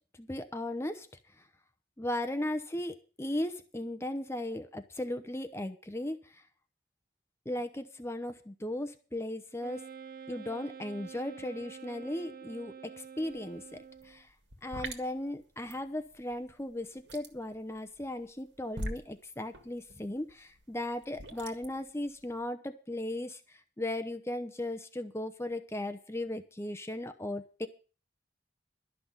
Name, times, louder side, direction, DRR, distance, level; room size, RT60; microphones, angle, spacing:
voice 1, 0.2-1.1 2.0-6.4 7.5-9.8 10.3-14.3 14.6-27.7, left 1 dB, 15° left, 9 dB, 0.8 m, -37 dB
Wind instrument woodwind instrument, 9.6-14.2, right 7 dB, 55° right, 0.8 m, -48 dB
sound 1, 13.2-13.5 13.7-22.4, right 1 dB, 85° right, 1.9 m, -44 dB
12.5 x 6.0 x 8.9 m, 0.36 s
head